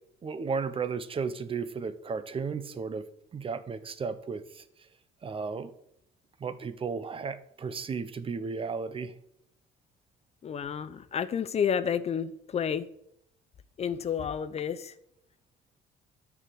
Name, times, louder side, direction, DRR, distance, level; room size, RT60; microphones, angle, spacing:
voice 1, 0.2-3.1 3.3-4.6 5.2-5.7 6.4-9.1, right 5 dB, 30° right, 0.8 m, -34 dB
voice 2, 10.4-12.9 13.8-14.9, left 7 dB, 40° left, 0.6 m, -30 dB
9.8 x 4.9 x 7.8 m
cardioid pair, 110°, 17 cm